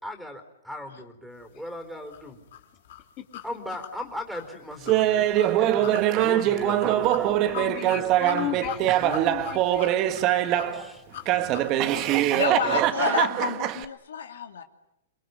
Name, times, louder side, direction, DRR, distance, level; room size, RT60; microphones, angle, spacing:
voice 1, 0.0-2.4 3.4-8.5 10.7-12.3 12.6-12.8, left 1 dB, ahead, 8 dB, 4.2 m, -39 dB
sound 1, 2.1-12.2, left 10 dB, 65° left, 3.4 m, -42 dB
Laughter, 4.9-10.8 11.3-13.9, right 12 dB, 35° right, 1.6 m, -23 dB
voice 2, 7.4-11.0 11.8-12.6, left 10 dB, 35° left, 4 dB, 2.6 m, -36 dB
voice 3, 12.3-14.6, left 7 dB, 80° left, 6 dB, 2.7 m, -29 dB
29.0 x 21.5 x 9.5 m, 0.85 s
hypercardioid pair, 135°, 0 cm